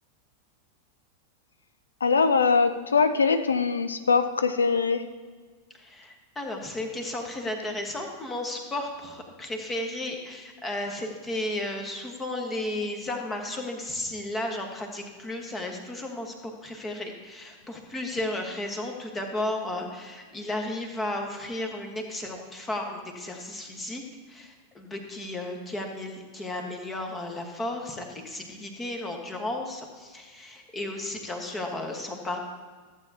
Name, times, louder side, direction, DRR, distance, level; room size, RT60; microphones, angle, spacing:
voice 1, 2.0-5.1, left 5 dB, 70° left, 10 dB, 0.4 m, -22 dB
voice 2, 5.8-24.0 24.3-32.4, left 1 dB, 15° left, 3 dB, 1.4 m, -34 dB
14.5 x 8.1 x 2.9 m, 1.5 s
figure-of-eight pair, 90°, 0 cm